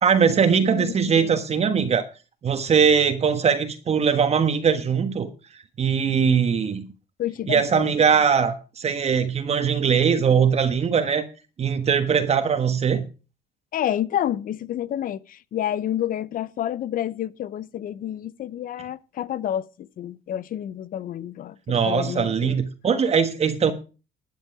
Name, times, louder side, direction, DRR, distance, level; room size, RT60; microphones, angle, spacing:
voice 1, 0.0-2.1 2.4-5.3 5.8-6.9 7.5-11.3 11.6-13.0 21.7-23.7, right 6 dB, 40° right, 1.4 m, -21 dB
voice 2, 0.7-1.3 7.2-7.8 13.7-22.6, left 11 dB, 55° left, 0.8 m, -29 dB
12.5 x 9.4 x 4.9 m
cardioid pair, 110°, 17 cm